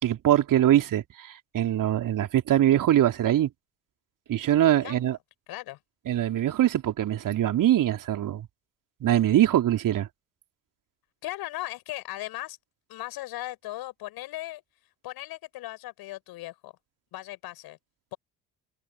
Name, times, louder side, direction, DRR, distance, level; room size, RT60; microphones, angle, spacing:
voice 1, 0.0-3.5 4.3-5.2 6.1-8.5 9.0-10.1, right 12 dB, 50° right, 3.5 m, -23 dB
voice 2, 5.5-5.8 11.2-12.6 12.9-14.6 15.0-16.7 17.1-17.8, left 16 dB, 60° left, 7.1 m, -37 dB
figure-of-eight pair, 55°, 42 cm